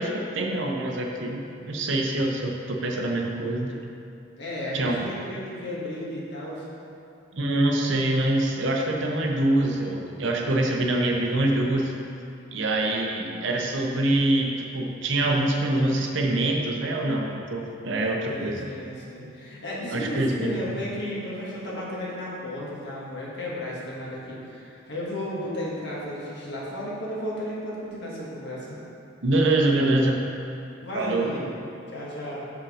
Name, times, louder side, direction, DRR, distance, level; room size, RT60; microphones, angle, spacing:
voice 1, 0.0-3.8 4.7-5.0 7.3-11.9 12.5-18.7 19.9-20.5 29.2-30.2 30.9-31.3, right 1 dB, 65° right, 1 dB, 0.7 m, -25 dB
voice 2, 4.4-6.7 18.3-28.8 30.8-31.5 31.9-32.4, left 1 dB, 55° left, -6 dB, 1.5 m, -34 dB
6.2 x 5.1 x 4.9 m, 2.7 s
head